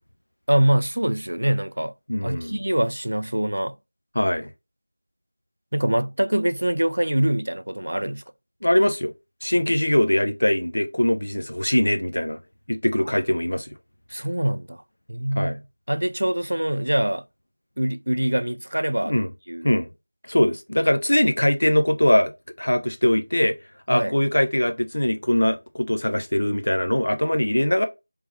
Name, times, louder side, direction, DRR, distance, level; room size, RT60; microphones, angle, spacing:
voice 1, 0.5-1.9 2.2-3.8 5.7-8.2 14.1-14.8 15.1-17.2 17.8-19.1 19.5-19.7 23.9-24.2, right 1 dB, 75° right, 0.3 m, -24 dB
voice 2, 2.1-2.6 4.1-4.5 8.6-9.1 9.4-12.4 12.7-13.7 15.4-15.6 19.0-19.3 19.6-19.9 20.3-22.3 22.6-23.6 23.9-27.8, left 1 dB, 70° left, 0.7 m, -21 dB
3.5 x 3.1 x 3.2 m
figure-of-eight pair, 175°, 0 cm